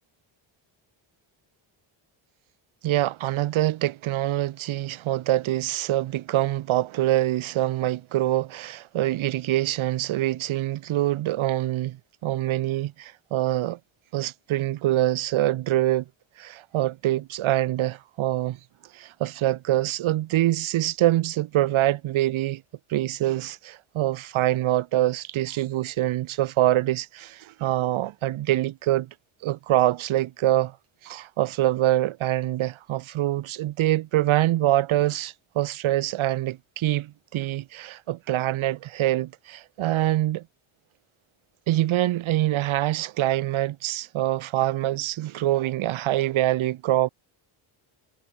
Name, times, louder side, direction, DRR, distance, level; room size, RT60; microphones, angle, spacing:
voice 1, 2.8-13.8 14.1-16.0 16.4-18.6 18.9-22.6 22.9-29.1 29.4-30.8 31.0-40.4 41.7-47.1, right 14 dB, 75° right, 2.9 m, -25 dB
cardioid pair, 140°, 49 cm